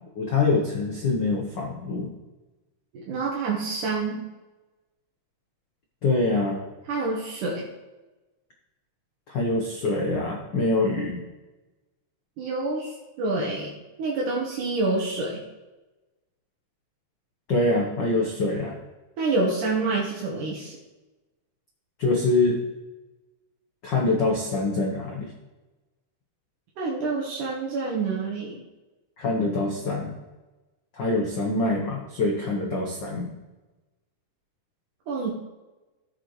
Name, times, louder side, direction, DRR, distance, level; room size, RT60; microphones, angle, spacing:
voice 1, 0.2-2.1 6.0-6.6 9.3-11.2 17.5-18.8 22.0-22.6 23.8-25.3 29.2-30.1 31.0-33.3, left 2 dB, 85° left, 0 dB, 1.0 m, -24 dB
voice 2, 2.9-4.3 6.9-7.7 12.4-15.4 19.2-20.8 26.8-28.6 35.1-35.3, right 3 dB, 75° right, -3 dB, 2.7 m, -27 dB
14.5 x 6.8 x 3.1 m, 1.1 s
omnidirectional pair, 3.7 m